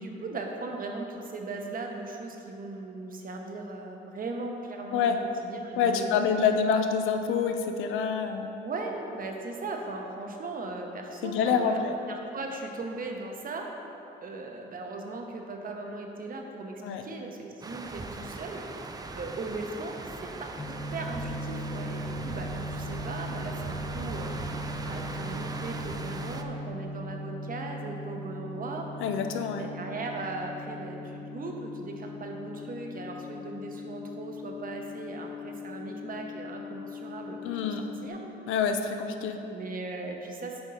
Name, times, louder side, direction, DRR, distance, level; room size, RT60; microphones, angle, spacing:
voice 1, 0.0-5.1 5.4-6.4 8.6-13.7 14.2-28.9 29.5-37.7 38.0-38.2 39.5-40.6, right 3 dB, 45° right, 2 dB, 0.9 m, -38 dB
voice 2, 5.8-8.5 11.2-11.9 16.8-17.0 29.0-29.7 37.4-37.8 38.5-39.4, left 6 dB, 90° left, 6 dB, 0.5 m, -27 dB
sound 1, 17.6-26.4, right 3 dB, 20° right, 0.4 m, -39 dB
sound 2, 20.6-38.1, left 1 dB, 10° left, 0.8 m, -39 dB
7.8 x 3.7 x 5.6 m, 2.9 s
cardioid pair, 90°, 20 cm